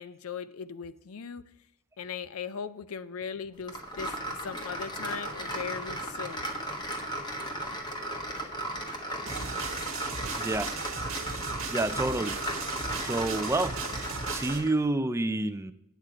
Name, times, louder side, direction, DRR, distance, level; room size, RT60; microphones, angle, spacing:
voice 1, 0.0-1.5 2.0-4.1 4.4-6.5 11.3-11.5, left 6 dB, 85° left, 15 dB, 0.5 m, -38 dB
sound 1, 3.7-14.8, right 1 dB, 20° left, 1.3 m, -36 dB
sound 2, 9.3-14.6, right 5 dB, 70° right, 1.4 m, -37 dB
voice 2, 10.3-10.7 11.7-12.4 13.0-13.8 14.3-15.7, right 2 dB, 15° right, 11 dB, 0.4 m, -28 dB
9.0 x 8.1 x 4.7 m, 0.82 s
head